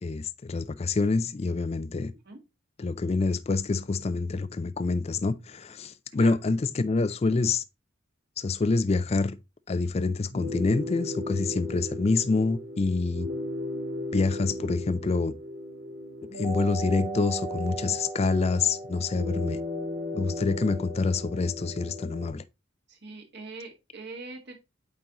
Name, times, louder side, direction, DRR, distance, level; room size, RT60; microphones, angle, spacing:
voice 1, 0.0-2.1 2.8-7.6 8.4-9.4 9.7-13.3 14.1-15.3 16.4-19.6 20.1-22.4, left 3 dB, 30° left, 0.4 m, -26 dB
sound 1, 10.3-22.3, left 1 dB, 75° right, 2.6 m, -36 dB
voice 2, 22.9-24.6, right 3 dB, 55° right, 1.7 m, -42 dB
8.6 x 3.9 x 2.9 m
head